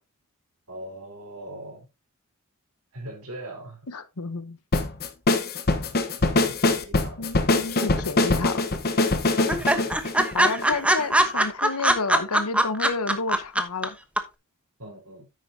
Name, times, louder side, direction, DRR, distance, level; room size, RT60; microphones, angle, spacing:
voice 1, 0.7-1.9 2.9-3.8 6.2-7.2 9.6-9.8 14.8-15.3, right 1 dB, 70° right, 4.8 m, -40 dB
voice 2, 3.9-4.6 7.2-8.6 9.7-9.8 10.3-14.0, left 4 dB, 75° left, 1.0 m, -30 dB
sound 1, 4.7-11.0, left 2 dB, 45° left, 1.2 m, -23 dB
sound 2, 7.8-8.4 8.7-8.8 9.1-9.2 9.5-13.9 14.2-14.3, right 1 dB, 5° right, 1.0 m, -21 dB
10.0 x 8.6 x 2.8 m
head